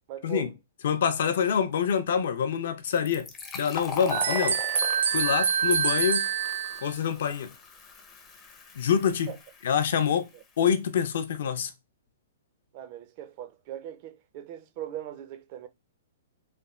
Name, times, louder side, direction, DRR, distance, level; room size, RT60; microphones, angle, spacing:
voice 1, 0.1-0.5 9.3-9.4 10.3-10.4 12.7-15.7, right 11 dB, 30° right, 0.5 m, -40 dB
voice 2, 0.8-3.3 3.5-4.6 5.1-6.3 6.8-7.5 8.8-9.3 9.6-10.3 10.6-11.7, left 7 dB, 55° left, 0.6 m, -26 dB
Fill (with liquid), 2.9-10.3, left 4 dB, 15° left, 0.6 m, -40 dB
sound 1, 4.1-6.9, right 7 dB, 80° right, 0.6 m, -26 dB
3.3 x 2.2 x 4.2 m
hypercardioid pair, 165°, 0 cm